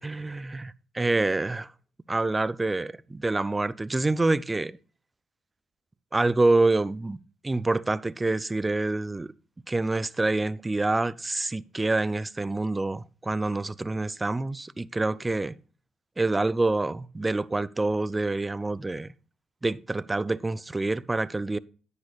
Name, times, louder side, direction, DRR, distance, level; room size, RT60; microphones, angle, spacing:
voice 1, 0.0-1.7 2.1-4.8 6.1-7.2 7.4-9.3 9.7-15.5 16.2-19.1 19.6-21.6, right 2 dB, 20° right, 0.4 m, -26 dB
9.7 x 9.5 x 2.4 m
supercardioid pair, 75°, 0 cm